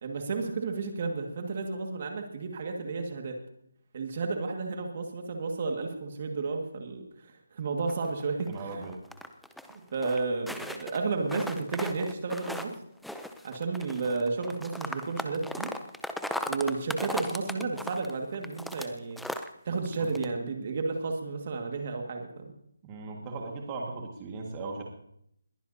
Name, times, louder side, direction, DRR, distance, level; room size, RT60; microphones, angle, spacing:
voice 1, 0.0-3.4 3.9-8.9 9.7-12.7 13.4-15.7 16.5-19.2 19.7-22.5, right 4 dB, 40° right, 3 dB, 1.9 m, -32 dB
sound 1, 7.9-9.8 10.0-11.0 11.3-12.8 13.0-18.9 19.2-19.5 19.9-20.3, left 1 dB, ahead, 0.5 m, -37 dB
voice 2, 8.5-9.0 20.0-20.1 22.8-24.8, right 3 dB, 20° right, 0 dB, 1.9 m, -38 dB
21.0 x 15.0 x 2.8 m, 0.73 s
figure-of-eight pair, 165°, 0 cm